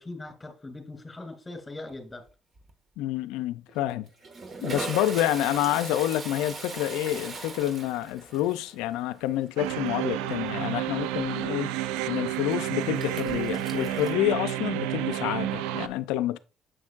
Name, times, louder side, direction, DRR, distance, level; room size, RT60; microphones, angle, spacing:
voice 1, 0.0-2.2, left 2 dB, 20° left, 2.5 m, -40 dB
Toilet flush, 1.9-2.3 2.6-2.7 3.7-14.1, right 3 dB, 45° right, 1.3 m, -40 dB
voice 2, 3.0-4.1 4.6-11.7 12.1-16.4, left 13 dB, 80° left, 0.4 m, -28 dB
sound 1, 9.6-15.9, right 13 dB, 80° right, 0.4 m, -30 dB
7.6 x 6.2 x 2.4 m
hypercardioid pair, 60°, 0 cm